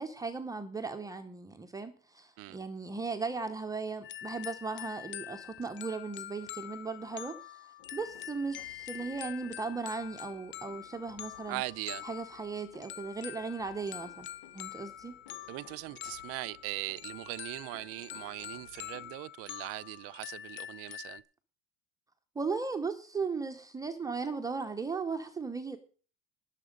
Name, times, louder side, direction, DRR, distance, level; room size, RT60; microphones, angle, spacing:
voice 1, 0.0-7.6 7.9-11.6 12.0-14.3 14.5-15.2 22.4-25.8, right 4 dB, 10° right, 0.7 m, -37 dB
sound 1, 4.0-21.2, left 12 dB, 35° left, 0.8 m, -45 dB
sound 2, 7.8-19.1, left 6 dB, 80° left, 3.1 m, -59 dB
voice 2, 11.5-12.0 15.5-21.2, right 21 dB, 45° right, 0.5 m, -40 dB
19.5 x 7.3 x 5.2 m
cardioid pair, 170°, 31 cm